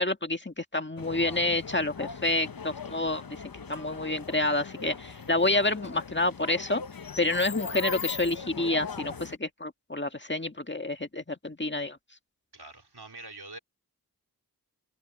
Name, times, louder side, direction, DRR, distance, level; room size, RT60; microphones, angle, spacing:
voice 1, 0.0-6.8 7.2-12.0, left 2 dB, 30° left, 1.8 m, -29 dB
sound 1, 1.0-9.4, left 5 dB, 65° left, 0.8 m, -39 dB
voice 2, 12.5-13.6, right 2 dB, 90° right, 3.8 m, -44 dB
wide cardioid pair, 40°, 38 cm